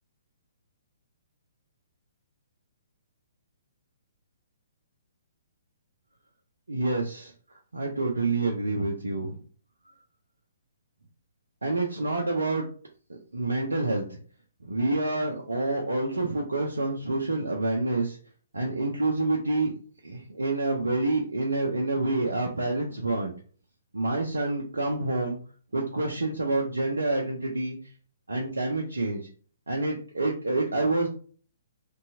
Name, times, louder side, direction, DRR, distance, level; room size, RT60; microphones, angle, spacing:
voice 1, 6.7-7.3 7.7-9.4 11.6-12.7 13.1-14.2 14.6-18.2 18.5-19.7 20.0-23.3 23.9-25.4 25.7-27.8 28.3-29.3 29.7-31.1, right 2 dB, 85° right, -1 dB, 0.5 m, -27 dB
2.7 x 2.2 x 2.6 m, 0.42 s
figure-of-eight pair, 125°, 0 cm